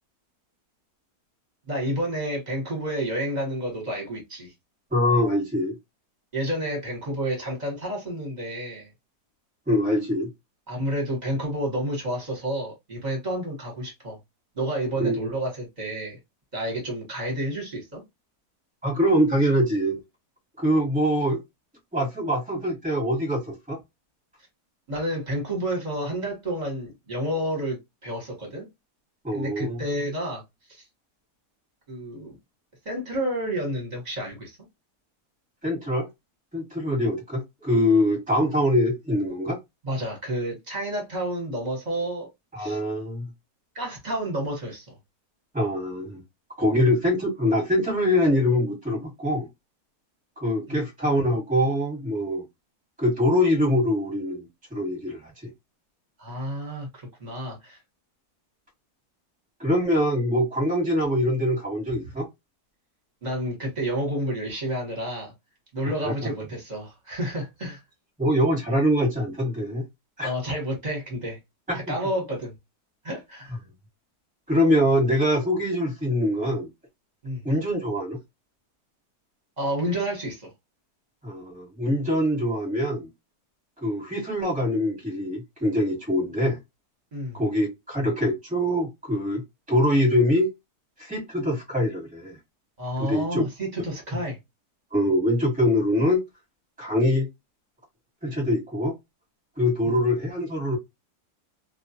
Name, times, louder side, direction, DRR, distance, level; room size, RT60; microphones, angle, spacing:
voice 1, 1.7-4.5 6.3-8.9 10.7-14.2 14.6-16.2 16.5-18.0 24.9-28.7 29.3-30.4 30.7-30.8 31.9-32.4 32.8-34.6 39.8-42.3 42.6-42.8 43.7-45.0 50.7-50.8 56.2-57.8 63.2-65.3 65.7-67.8 70.2-71.4 71.7-72.5 73.0-73.6 77.2-77.4 79.6-80.5 87.1-87.4 92.8-94.4 99.8-100.0, right 1 dB, 30° right, 1.0 m, -30 dB
voice 2, 4.9-5.7 9.7-10.3 15.0-15.2 18.8-20.0 20.6-21.4 21.9-23.8 29.2-29.8 35.6-36.1 36.5-39.6 42.5-43.3 45.5-46.2 46.6-49.5 50.4-52.4 53.0-55.5 59.6-62.3 66.0-66.3 68.2-69.8 70.2-70.3 71.7-71.8 74.5-76.7 77.4-78.2 81.2-83.1 83.8-86.6 87.3-89.4 89.7-90.5 91.0-92.4 93.0-93.4 94.9-96.2 96.8-97.3 98.2-98.9 99.6-100.8, left 1 dB, 5° right, 1.0 m, -24 dB
2.4 x 2.3 x 2.6 m
omnidirectional pair, 1.7 m